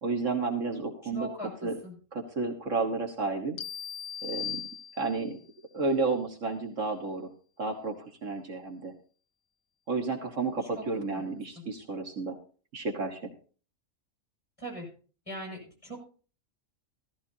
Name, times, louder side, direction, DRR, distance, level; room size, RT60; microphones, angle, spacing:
voice 1, 0.0-1.3 1.6-1.8 2.1-3.6 4.2-4.6 5.0-5.4 5.7-7.3 7.6-7.9 8.2-8.9 9.9-12.4 12.7-13.2, right 3 dB, 65° right, 3 dB, 1.8 m, -31 dB
voice 2, 1.0-2.0 10.7-10.9 11.1-11.2 11.6-11.7 14.6-14.9 15.3-16.0, right 1 dB, 25° left, -1 dB, 7.0 m, -40 dB
sound 1, 3.6-5.4, left 9 dB, 85° left, 1.2 m, -38 dB
16.5 x 14.0 x 2.8 m, 0.39 s
omnidirectional pair, 1.4 m